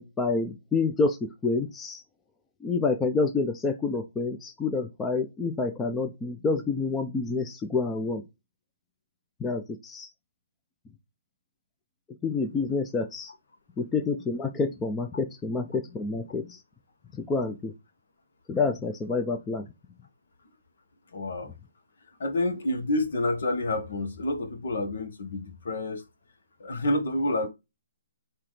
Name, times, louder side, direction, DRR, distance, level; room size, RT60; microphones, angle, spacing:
voice 1, 0.0-2.0 2.6-8.2 9.4-10.1 12.2-13.3 13.8-16.6 17.1-17.7 18.5-19.7, left 4 dB, 10° left, 0.5 m, -28 dB
voice 2, 21.1-21.5 22.2-26.0 26.6-27.5, left 1 dB, 70° left, 1.3 m, -28 dB
5.5 x 2.9 x 3.2 m
hypercardioid pair, 160°, 0 cm